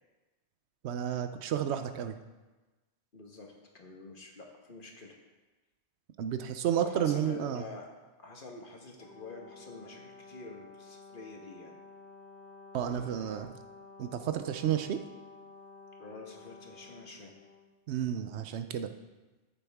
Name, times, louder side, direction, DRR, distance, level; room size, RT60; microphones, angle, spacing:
voice 1, 0.8-2.2 6.2-7.6 12.7-13.5 14.0-15.0 17.9-18.9, right 9 dB, 75° right, 8 dB, 0.9 m, -31 dB
voice 2, 3.1-5.1 6.7-7.8 8.2-11.7 16.0-17.3, left 3 dB, 50° left, 1 dB, 1.5 m, -47 dB
Brass instrument, 9.0-17.7, left 3 dB, 10° left, 2.1 m, -52 dB
13.5 x 6.7 x 3.5 m, 1.2 s
omnidirectional pair, 1.1 m